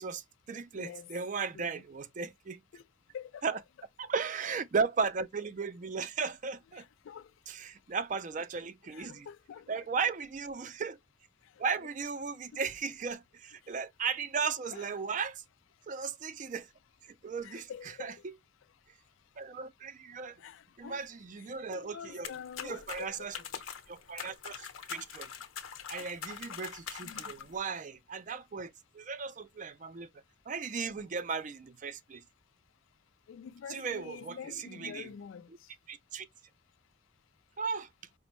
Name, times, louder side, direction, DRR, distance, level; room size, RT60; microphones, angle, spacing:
voice 1, 0.0-2.6 3.4-3.6 4.0-6.8 7.5-9.3 9.7-11.0 11.6-15.4 15.9-16.7 17.0-17.7 18.0-18.3 19.4-20.4 20.8-22.3 22.6-23.3 23.9-25.3 25.9-30.1 30.5-32.2 33.7-35.1 35.9-36.3 37.6-37.9, right 5 dB, 40° right, 0.4 m, -36 dB
voice 2, 0.7-1.1 1.5-1.8 2.7-2.8 3.1-3.5 6.8-7.3 8.9-9.8 12.5-12.6 14.7-14.9 17.4-18.2 20.4-21.1 21.4-21.5 21.7-23.3 27.0-27.3 33.3-35.5, left 7 dB, 75° left, 0.3 m, -46 dB
sound 1, 22.2-27.6, left 7 dB, 90° left, 0.8 m, -43 dB
5.1 x 2.1 x 3.0 m
head